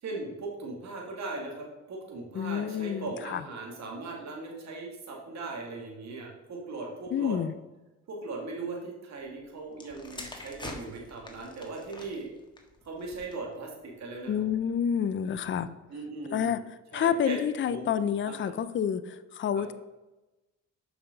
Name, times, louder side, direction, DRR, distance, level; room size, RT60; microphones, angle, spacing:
voice 1, 0.0-7.4 8.1-12.3 12.8-14.4 15.9-16.6 16.9-17.4 17.7-17.9 18.2-18.5 19.5-19.6, right 3 dB, 65° right, -1 dB, 2.1 m, -39 dB
voice 2, 2.3-3.4 7.1-7.5 14.3-15.7 16.3-16.6 16.9-19.7, left 8 dB, 40° left, 12 dB, 0.5 m, -29 dB
sound 1, 9.7-13.6 14.3-14.6, left 2 dB, 15° left, 1.5 m, -45 dB
6.9 x 5.6 x 5.1 m, 1.0 s
cardioid pair, 90°, 30 cm